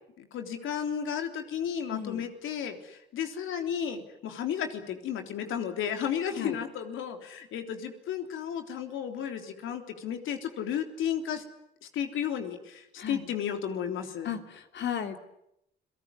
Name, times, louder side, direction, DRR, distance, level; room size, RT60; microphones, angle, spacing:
voice 1, 0.2-11.4 11.8-14.3, left 8 dB, 85° left, 6 dB, 3.5 m, -33 dB
voice 2, 1.9-2.3 6.4-6.6 13.0-13.3 14.2-15.2, left 8 dB, 65° left, 6 dB, 3.0 m, -35 dB
30.0 x 18.5 x 9.7 m, 0.80 s
cardioid pair, 90°, 20 cm